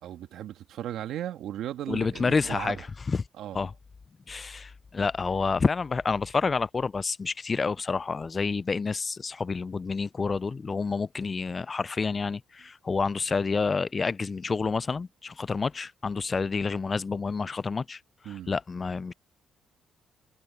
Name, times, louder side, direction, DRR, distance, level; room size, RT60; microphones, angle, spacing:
voice 1, 0.0-2.8 3.4-3.6 18.3-18.5, right 11 dB, 80° right, 1.8 m, -36 dB
voice 2, 1.9-2.8 3.1-3.2 3.5-3.7 4.3-18.0 18.2-19.1, left 4 dB, 35° left, 0.4 m, -29 dB
cardioid pair, 90°, 0 cm